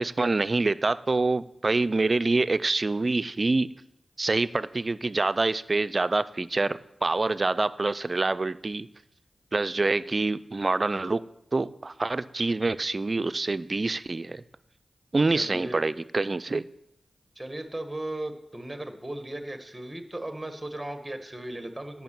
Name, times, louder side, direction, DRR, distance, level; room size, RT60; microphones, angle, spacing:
voice 1, 0.0-3.7 4.2-8.9 9.5-11.2 11.5-14.4 15.1-16.6, right 3 dB, 45° right, 15 dB, 0.4 m, -26 dB
voice 2, 15.3-15.9 17.3-22.0, right 1 dB, 15° right, 7 dB, 1.4 m, -36 dB
9.3 x 6.0 x 7.4 m, 0.80 s
cardioid pair, 50°, 0 cm